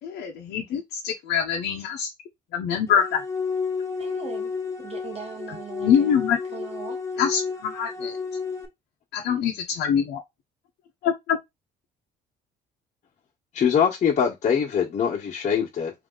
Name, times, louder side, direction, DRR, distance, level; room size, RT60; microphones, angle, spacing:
voice 1, 0.1-2.1 2.5-3.2 5.5-6.4 7.2-8.1 9.1-10.2 11.0-11.4, left 8 dB, 75° left, 1.0 m, -24 dB
sound 1, 2.9-8.7, left 5 dB, 15° left, 1.3 m, -31 dB
voice 2, 4.0-4.5 4.8-6.2 6.5-7.0, right 5 dB, 35° right, 1.5 m, -39 dB
voice 3, 13.5-15.9, left 7 dB, 45° left, 1.4 m, -23 dB
3.4 x 2.9 x 4.0 m
cardioid pair, 110°, 17 cm